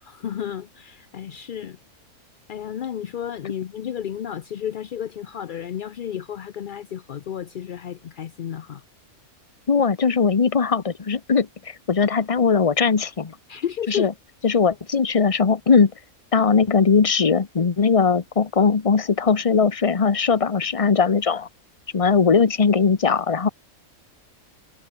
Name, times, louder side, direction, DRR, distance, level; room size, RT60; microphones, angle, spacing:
voice 1, 0.0-1.8 2.5-8.8 13.5-14.1, left 9 dB, 60° left, 0.5 m, -32 dB
voice 2, 9.7-13.3 13.9-14.1 14.4-15.9 16.3-21.5 21.9-23.5, left 5 dB, 30° left, 0.8 m, -19 dB
omnidirectional pair, 1.5 m